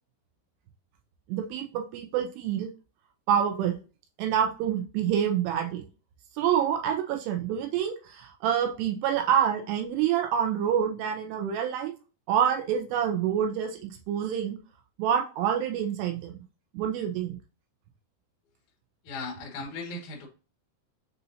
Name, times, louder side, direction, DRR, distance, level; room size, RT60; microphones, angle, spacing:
voice 1, 1.3-2.7 3.3-3.8 4.2-5.9 6.4-11.9 12.3-14.6 15.0-16.4 16.7-17.4, right 9 dB, 80° right, 3 dB, 2.7 m, -27 dB
voice 2, 19.0-20.3, left 3 dB, 60° left, 0 dB, 2.2 m, -37 dB
6.8 x 2.6 x 2.7 m, 0.34 s
omnidirectional pair, 5.0 m